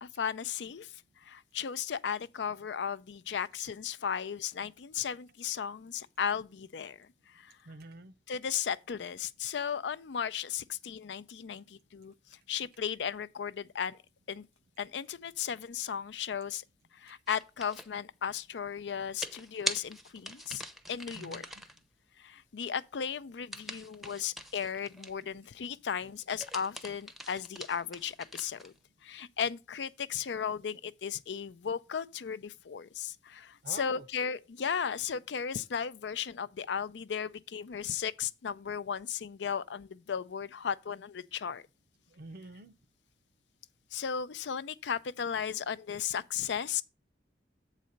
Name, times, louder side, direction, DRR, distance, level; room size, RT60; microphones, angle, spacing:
voice 1, 0.0-0.9 1.2-7.5 8.3-12.1 12.5-14.0 14.3-14.5 14.8-16.6 16.9-20.6 20.9-21.4 22.2-28.7 29.0-41.6 43.9-46.8, left 7 dB, 80° left, 0.5 m, -35 dB
voice 2, 7.7-8.1 21.1-21.6 33.6-34.0 42.2-42.7, right 3 dB, 60° right, 0.6 m, -46 dB
sound 1, 17.3-17.9 19.2-21.8 23.5-25.3 26.2-28.8, right 1 dB, ahead, 0.6 m, -42 dB
7.6 x 4.1 x 6.4 m
head